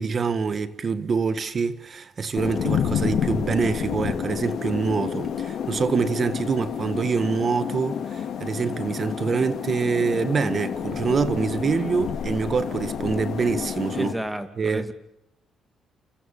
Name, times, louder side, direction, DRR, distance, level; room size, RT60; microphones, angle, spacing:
voice 1, 0.0-14.1 14.6-14.9, right 5 dB, 45° right, 1.8 m, -25 dB
sound 1, 2.3-14.1, left 8 dB, 70° left, 4.7 m, -29 dB
voice 2, 13.9-14.9, right 1 dB, 5° right, 2.6 m, -31 dB
29.0 x 27.5 x 7.2 m
cardioid pair, 90°, 0 cm